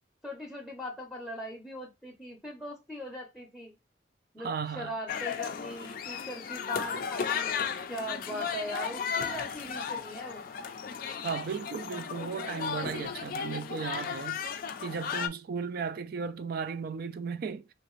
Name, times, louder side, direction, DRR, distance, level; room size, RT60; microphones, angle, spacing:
voice 1, 0.2-3.7 4.3-7.6 7.9-10.5, equal, ahead, 0.6 m, -40 dB
voice 2, 4.4-4.9 11.2-14.4 14.8-17.7, right 5 dB, 55° right, 0.4 m, -35 dB
sound 1, 5.1-15.3, left 7 dB, 50° left, 0.4 m, -35 dB
3.2 x 2.5 x 3.0 m
head